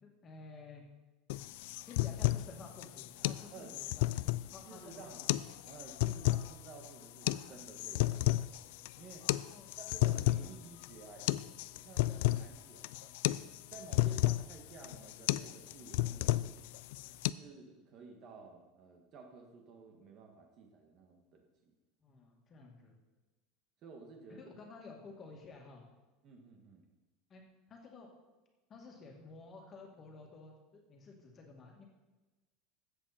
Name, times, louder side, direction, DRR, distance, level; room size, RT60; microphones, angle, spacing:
voice 1, 0.0-0.8 1.9-4.1 4.5-5.3 9.4-9.8 17.0-17.2 22.0-23.0 24.3-25.8 27.3-27.4 27.7-28.1 28.7-31.8, left 3 dB, 25° left, 1 dB, 2.1 m, -52 dB
sound 1, 1.3-17.3, left 17 dB, 70° left, 0.3 m, -33 dB
voice 2, 4.7-5.3 5.6-8.7 9.0-9.3 9.8-11.3 11.6-13.2 13.7-16.6 17.4-21.7 23.8-24.5 26.2-26.8, right 4 dB, 40° right, 2 dB, 1.5 m, -53 dB
14.5 x 7.9 x 4.3 m, 1.1 s
supercardioid pair, 160°, 0 cm